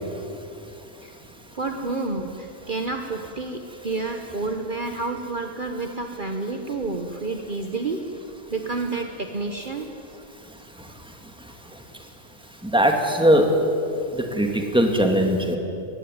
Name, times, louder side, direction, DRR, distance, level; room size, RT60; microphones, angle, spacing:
voice 1, 1.5-8.0 8.5-9.9, right 3 dB, 45° right, 4 dB, 1.3 m, -29 dB
voice 2, 12.6-13.5 14.3-15.6, equal, 5° right, 3 dB, 2.1 m, -19 dB
20.0 x 16.0 x 9.4 m, 2.6 s
omnidirectional pair, 1.3 m